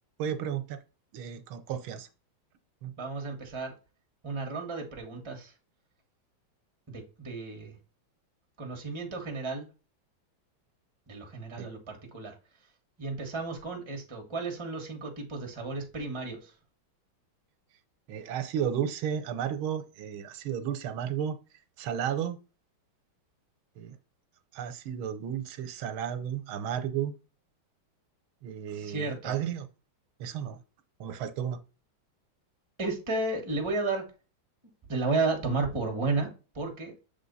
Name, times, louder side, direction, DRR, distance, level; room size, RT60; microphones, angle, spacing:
voice 1, 0.2-0.8 1.1-2.1 2.8-2.9 11.6-11.7 18.1-21.4 21.8-22.4 23.8-23.9 24.5-27.1 28.4-29.7 30.2-30.6 31.0-31.6, right 9 dB, 85° right, 1.6 m, -33 dB
voice 2, 3.0-3.7 4.2-5.5 6.9-7.7 8.6-9.6 11.1-12.3 13.0-16.5 28.7-29.4 32.8-34.0 34.9-36.3 36.5-36.9, right 3 dB, 15° right, 1.2 m, -33 dB
6.9 x 3.7 x 4.0 m
omnidirectional pair, 2.2 m